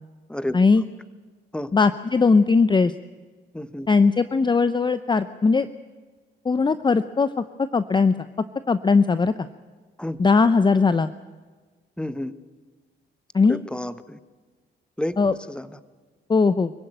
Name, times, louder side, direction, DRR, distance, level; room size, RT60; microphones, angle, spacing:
voice 1, 1.7-2.9 3.9-5.7 6.4-8.3 8.7-9.3 10.2-11.1 13.3-13.6 15.2-15.3 16.3-16.7, left 4 dB, 25° left, 13 dB, 0.7 m, -19 dB
voice 2, 3.5-3.9 10.0-10.2 12.0-12.3 13.5-14.2 15.0-15.2 15.5-15.8, left 1 dB, 5° left, 13 dB, 1.2 m, -30 dB
24.5 x 15.5 x 9.1 m, 1.4 s
cardioid pair, 90°, 20 cm